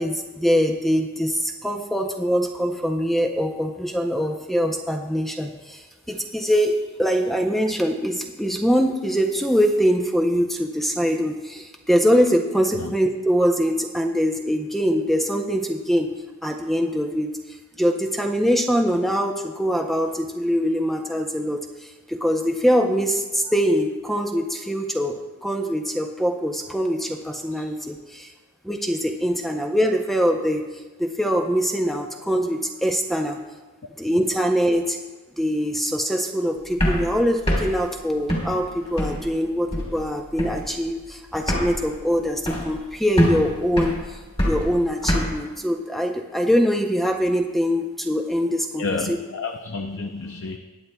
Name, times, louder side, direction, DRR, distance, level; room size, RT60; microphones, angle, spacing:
voice 1, 0.0-16.1 16.4-17.3 17.8-28.3 28.6-30.7 31.0-33.4 34.0-35.0 35.4-49.2, equal, ahead, 3 dB, 0.5 m, -23 dB
sound 1, 36.7-39.4 39.7-40.1 40.4-40.8 41.0-41.1 41.3-42.9 43.2-45.2, equal, 30° left, 2.7 m, -25 dB
voice 2, 48.8-50.6, left 4 dB, 65° left, 4 dB, 0.6 m, -30 dB
20.0 x 9.3 x 2.2 m, 1.2 s
head